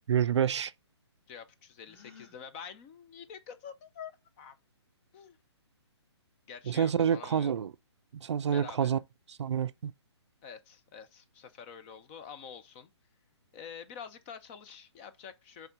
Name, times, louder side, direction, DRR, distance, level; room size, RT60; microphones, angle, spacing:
voice 1, 0.1-0.7 6.7-7.7 8.2-9.0 9.4-9.9, right 8 dB, 75° right, 0.4 m, -27 dB
voice 2, 1.3-4.1 4.4-4.6 5.1-5.4 6.5-7.5 8.5-9.0 10.4-12.9 13.5-15.7, left 7 dB, 25° left, 0.7 m, -47 dB
Gasp, 1.8-2.4, left 6 dB, 5° left, 1.1 m, -54 dB
5.7 x 3.7 x 5.1 m
hypercardioid pair, 155°, 15 cm